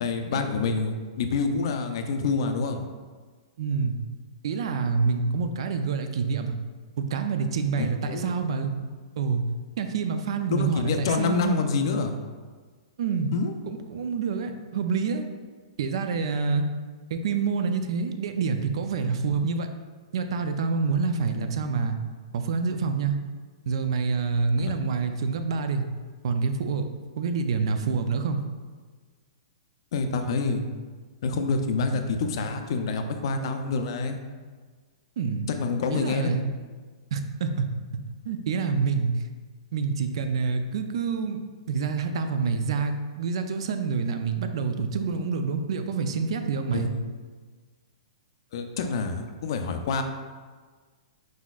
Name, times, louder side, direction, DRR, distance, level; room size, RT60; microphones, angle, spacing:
voice 1, 0.0-2.8 7.8-8.3 10.5-12.2 13.3-13.5 24.6-24.7 29.9-30.6 31.2-34.2 35.5-36.3 46.7-47.0 48.5-50.0, left 4 dB, 50° left, 6 dB, 0.4 m, -27 dB
voice 2, 3.6-4.0 4.4-6.6 7.0-8.7 9.2-9.4 9.8-11.6 13.0-13.3 13.7-15.3 15.8-16.7 17.1-19.7 20.1-22.0 22.3-23.2 23.7-25.8 26.2-26.9 27.2-28.4 35.2-35.5 35.9-36.5 37.1-37.7 38.3-39.1 39.7-41.4 41.7-46.9, right 5 dB, 55° right, 7 dB, 0.4 m, -27 dB
4.7 x 4.1 x 2.3 m, 1.5 s
hypercardioid pair, 165°, 3 cm